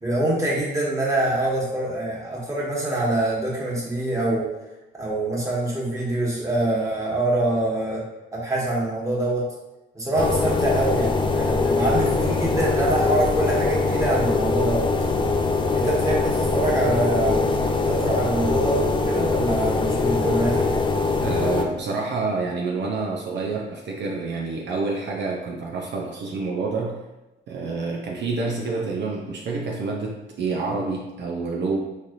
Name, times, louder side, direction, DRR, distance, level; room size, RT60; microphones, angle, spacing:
voice 1, 0.0-4.6 4.9-8.0 8.3-9.5 9.9-14.9 15.7-20.7, right 1 dB, 15° right, -5 dB, 1.3 m, -25 dB
sound 1, 10.2-21.6, left 3 dB, 25° left, 0.4 m, -22 dB
voice 2, 21.2-27.0 27.5-31.8, right 3 dB, 60° right, -1 dB, 0.6 m, -28 dB
4.0 x 3.2 x 2.5 m, 1.0 s
cardioid pair, 90°, 20 cm